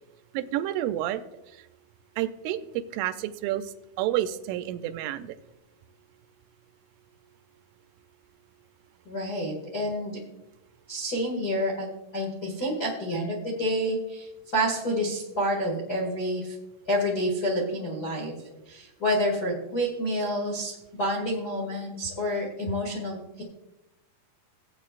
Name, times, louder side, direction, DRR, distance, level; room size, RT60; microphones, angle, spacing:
voice 1, 0.3-1.2 2.2-5.4, right 13 dB, 90° right, 11 dB, 3.2 m, -30 dB
voice 2, 9.0-10.2 10.9-11.9 12.1-16.5 16.8-18.3 18.6-23.4, equal, 85° left, -3 dB, 0.8 m, -28 dB
17.0 x 9.0 x 2.5 m, 0.94 s
omnidirectional pair, 5.5 m